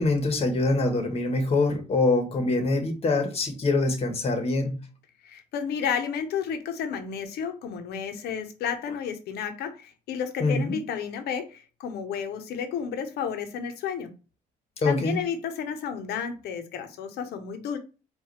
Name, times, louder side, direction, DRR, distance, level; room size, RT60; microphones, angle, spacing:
voice 1, 0.0-4.8 10.4-10.8 14.8-15.2, left 2 dB, 35° left, 1.2 m, -24 dB
voice 2, 5.2-14.1 14.8-17.8, left 7 dB, 70° left, 0.9 m, -32 dB
4.8 x 2.6 x 3.1 m
cardioid pair, 110°, 17 cm